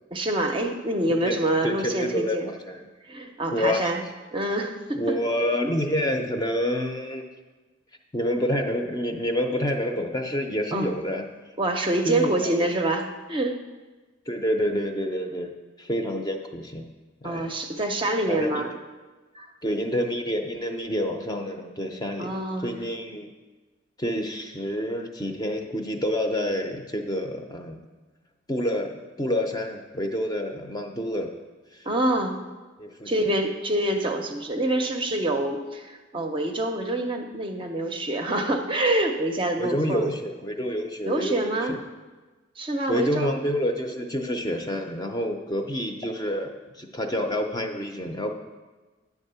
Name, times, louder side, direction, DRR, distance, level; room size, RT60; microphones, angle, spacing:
voice 1, 0.1-2.5 3.1-4.0 4.3-5.1 10.7-10.9 11.6-13.6 17.2-18.7 19.3-19.5 22.2-22.7 31.8-32.3 33.1-40.1 41.0-41.8 42.6-43.3, right 1 dB, 25° right, 4 dB, 0.6 m, -26 dB
voice 2, 1.6-2.9 3.5-3.9 4.9-7.3 8.1-11.2 12.0-12.7 14.3-16.9 17.2-17.5 18.3-18.6 19.6-22.3 22.6-23.3 24.0-27.8 28.5-31.3 31.7-31.9 32.8-33.3 39.6-41.8 42.9-46.5 46.8-48.3, equal, 20° left, 3 dB, 0.6 m, -28 dB
10.0 x 3.6 x 6.8 m, 1.3 s
head